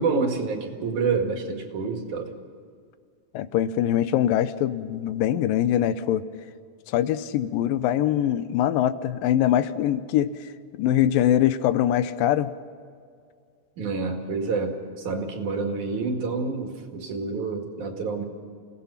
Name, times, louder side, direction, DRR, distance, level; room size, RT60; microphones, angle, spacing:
voice 1, 0.0-2.3 13.8-18.2, right 4 dB, 65° right, 3 dB, 3.6 m, -28 dB
voice 2, 3.3-6.2 6.9-10.3 10.8-12.5, left 11 dB, 90° left, 13 dB, 2.5 m, -23 dB
28.5 x 18.0 x 5.8 m, 2.2 s
omnidirectional pair, 3.9 m